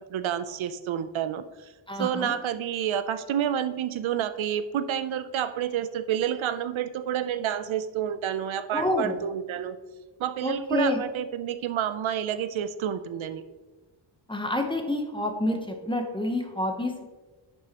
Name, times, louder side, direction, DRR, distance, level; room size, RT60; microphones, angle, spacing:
voice 1, 0.1-1.7 2.0-9.8 10.2-13.4, right 9 dB, 75° right, 11 dB, 0.6 m, -29 dB
voice 2, 1.9-2.3 8.7-9.2 10.4-11.0 14.3-17.0, left 1 dB, 10° left, 4 dB, 0.8 m, -28 dB
11.0 x 6.2 x 2.9 m, 1.2 s
wide cardioid pair, 165°, 48 cm